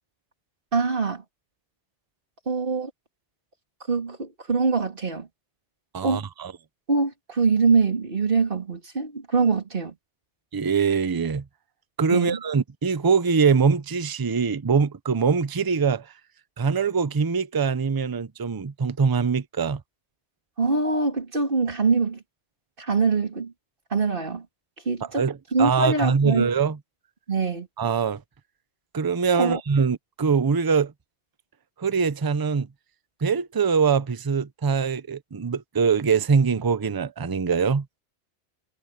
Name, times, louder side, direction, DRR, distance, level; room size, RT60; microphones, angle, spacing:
voice 1, 0.7-1.2 2.5-2.9 3.9-5.3 6.0-6.2 6.9-9.9 12.1-12.4 20.6-22.2 22.8-23.5 23.9-24.4 24.9-25.2 25.5-26.5 27.3-27.7 29.4-29.6, right 4 dB, 50° right, 2.8 m, -23 dB
voice 2, 5.9-6.5 10.5-11.4 12.0-16.1 16.6-19.8 25.0-26.8 27.8-28.2 28.9-30.9 31.8-32.7 33.2-37.8, right 5 dB, 25° right, 0.5 m, -23 dB
omnidirectional pair, 1.2 m